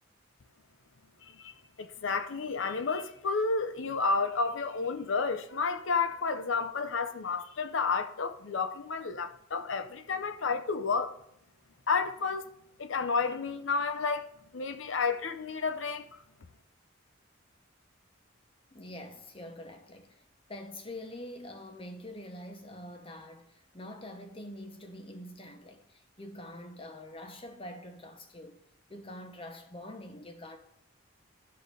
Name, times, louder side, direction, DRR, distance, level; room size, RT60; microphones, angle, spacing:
voice 1, 1.2-11.1 11.9-12.5 12.8-14.3 14.5-16.0, left 4 dB, 70° left, 0.7 m, -31 dB
voice 2, 18.7-20.2 20.5-28.6 28.9-30.6, left 1 dB, 25° left, 0.9 m, -45 dB
11.5 x 3.9 x 5.3 m
head